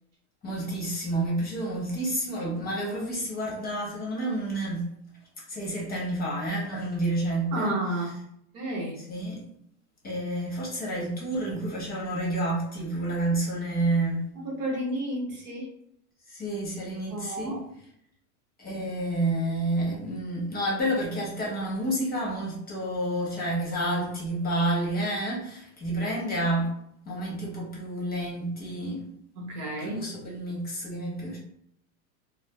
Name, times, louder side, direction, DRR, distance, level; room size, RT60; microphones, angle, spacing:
voice 1, 0.4-4.9 5.4-8.1 9.0-9.4 10.0-14.2 16.3-17.6 18.6-26.7 27.0-29.1 29.8-31.4, right 1 dB, 20° left, -4 dB, 1.0 m, -29 dB
voice 2, 7.5-8.2 8.5-9.0 14.4-15.7 17.1-17.6 29.4-30.1, right 1 dB, 45° right, -1 dB, 1.0 m, -31 dB
4.5 x 2.0 x 2.3 m, 0.71 s
supercardioid pair, 135°, 46 cm